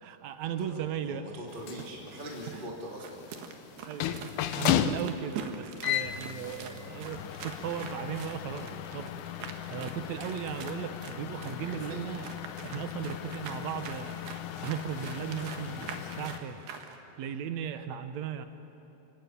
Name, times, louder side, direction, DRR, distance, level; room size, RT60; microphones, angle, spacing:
voice 1, 0.0-1.3 2.5-2.7 3.8-9.1 9.7-12.3 12.6-14.2 14.6-16.6 17.2-18.5, right 9 dB, 70° right, 10 dB, 1.7 m, -37 dB
voice 2, 0.6-3.2 11.6-12.1, equal, 15° right, -2 dB, 2.4 m, -42 dB
sound 1, 1.5-16.4, left 11 dB, 75° left, 2.1 m, -36 dB
sound 2, 3.0-17.0, right 6 dB, 85° right, 3.6 m, -44 dB
30.0 x 18.0 x 9.4 m, 3.0 s
omnidirectional pair, 4.4 m